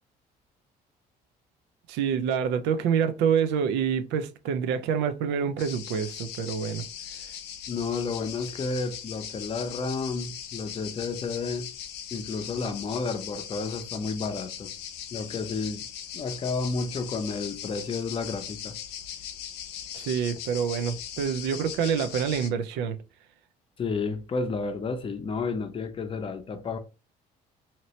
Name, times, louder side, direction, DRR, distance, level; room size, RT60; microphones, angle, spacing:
voice 1, 1.9-6.9 19.9-23.0, right 7 dB, 90° right, 0.5 m, -27 dB
sound 1, 5.6-22.5, left 9 dB, 90° left, 0.5 m, -40 dB
voice 2, 7.7-11.7 12.1-14.7 15.1-15.8 16.1-18.8 23.8-26.8, left 4 dB, 30° left, 0.5 m, -31 dB
2.9 x 2.7 x 3.1 m
cardioid pair, 110°, 17 cm